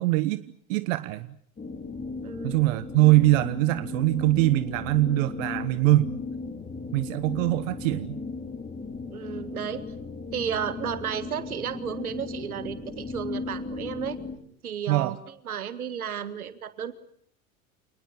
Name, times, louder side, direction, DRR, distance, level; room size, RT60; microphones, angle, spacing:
voice 1, 0.0-1.4 2.4-6.1 6.9-8.2 14.9-15.2, right 18 dB, 65° right, 14 dB, 1.1 m, -23 dB
sound 1, 1.6-14.4, left 4 dB, 20° left, 5.2 m, -36 dB
voice 2, 2.2-2.6 9.1-9.8 10.3-14.2 14.6-15.2 15.5-16.9, right 8 dB, 85° right, 13 dB, 1.9 m, -33 dB
28.0 x 19.5 x 9.0 m, 0.65 s
hypercardioid pair, 80°, 42 cm